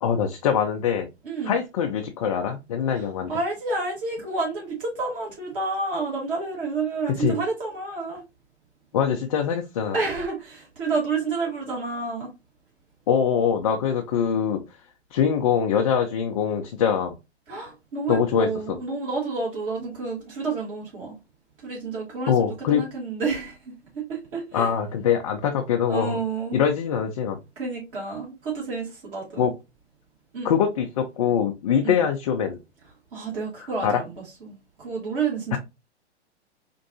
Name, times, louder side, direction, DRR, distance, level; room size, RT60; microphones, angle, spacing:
voice 1, 0.0-1.1 1.5-3.3 7.1-7.4 8.9-10.0 13.1-14.6 15.1-17.1 18.1-18.5 22.3-22.8 24.5-26.2 26.5-27.4 29.4-29.5 30.4-32.6 33.8-34.0 35.5-35.6, left 8 dB, 35° left, 0.4 m, -23 dB
voice 2, 1.2-1.5 2.9-8.2 9.9-12.3 17.5-21.2 21.6-24.7 25.9-26.6 27.6-29.5 30.3-30.5 31.8-32.0 33.1-35.6, right 4 dB, 50° right, 1.9 m, -30 dB
4.4 x 2.6 x 2.7 m
figure-of-eight pair, 110°, 35 cm